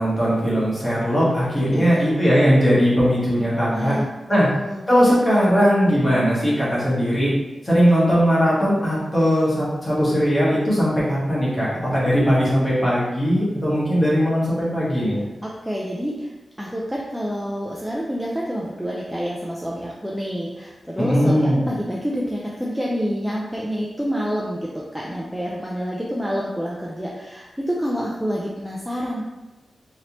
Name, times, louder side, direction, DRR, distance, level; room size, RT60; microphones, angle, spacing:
voice 1, 0.0-4.0 4.3-4.5 4.9-7.3 7.6-15.2 21.0-21.6, equal, 20° left, -8 dB, 1.2 m, -19 dB
voice 2, 1.7-2.1 3.7-4.1 4.3-4.8 15.4-16.3 16.6-29.2, equal, 5° right, -4 dB, 0.3 m, -28 dB
3.2 x 2.6 x 2.9 m, 1.1 s
wide cardioid pair, 155°, 0 cm